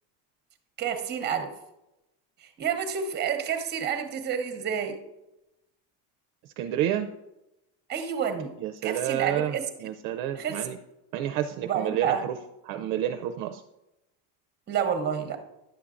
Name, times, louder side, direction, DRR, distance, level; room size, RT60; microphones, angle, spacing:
voice 1, 0.8-1.5 2.4-5.0 7.9-8.5 8.8-9.6 10.4-10.7 11.6-12.2 14.7-15.4, right 7 dB, 25° right, 7 dB, 0.8 m, -29 dB
voice 2, 6.6-7.1 8.6-10.8 11.1-12.4 12.7-13.6, right 11 dB, 55° right, 6 dB, 0.5 m, -29 dB
10.0 x 7.0 x 2.5 m, 0.92 s
cardioid pair, 155°, 41 cm